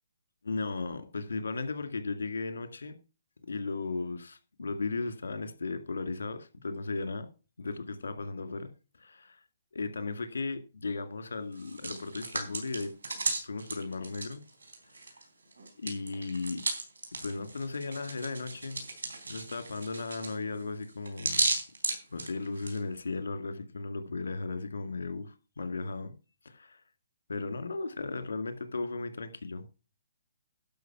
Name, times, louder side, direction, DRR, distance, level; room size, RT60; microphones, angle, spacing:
voice 1, 0.4-3.0 3.5-7.3 7.6-8.7 9.0-9.4 9.7-12.9 13.4-14.4 14.9-15.2 15.8-16.6 17.2-18.8 19.3-21.4 22.1-26.1 26.4-26.8 27.3-29.7, left 3 dB, 75° left, 2.1 m, -36 dB
Hands, 11.5-15.2 15.5-22.8, right 3 dB, 85° right, 3.8 m, -35 dB
12.0 x 6.1 x 5.8 m
hypercardioid pair, 140°, 0 cm